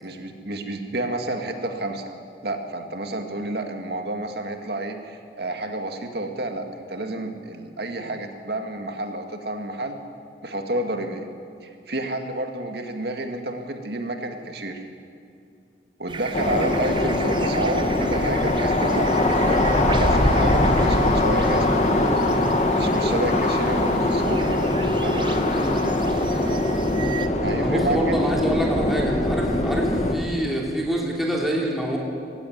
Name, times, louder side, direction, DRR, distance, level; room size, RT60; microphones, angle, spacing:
voice 1, 0.0-2.0 2.4-10.0 10.4-11.3 11.6-14.8 16.0-22.2 22.7-24.6 25.0-25.4 27.4-28.3, right 1 dB, 65° right, 4 dB, 2.1 m, -30 dB
sound 1, 16.1-27.3, right 4 dB, 25° right, 1.0 m, -37 dB
sound 2, 16.3-30.1, left 1 dB, 40° left, 1.6 m, -22 dB
voice 2, 25.6-25.9 27.6-32.0, right 1 dB, ahead, -3 dB, 2.8 m, -26 dB
19.5 x 16.0 x 9.5 m, 2.5 s
head